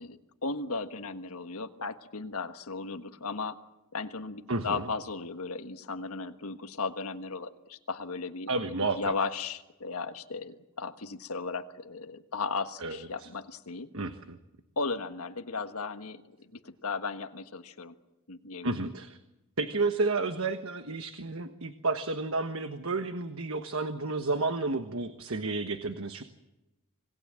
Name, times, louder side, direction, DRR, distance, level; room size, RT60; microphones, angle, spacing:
voice 1, 0.0-3.6 3.9-13.9 14.8-17.9 18.3-18.8, left 4 dB, 75° left, 8 dB, 1.5 m, -36 dB
voice 2, 4.5-4.9 8.5-9.1 12.8-13.3 13.9-14.4 18.6-19.2 19.6-26.2, right 3 dB, 65° right, 8 dB, 1.3 m, -31 dB
27.0 x 19.0 x 7.7 m, 0.99 s
head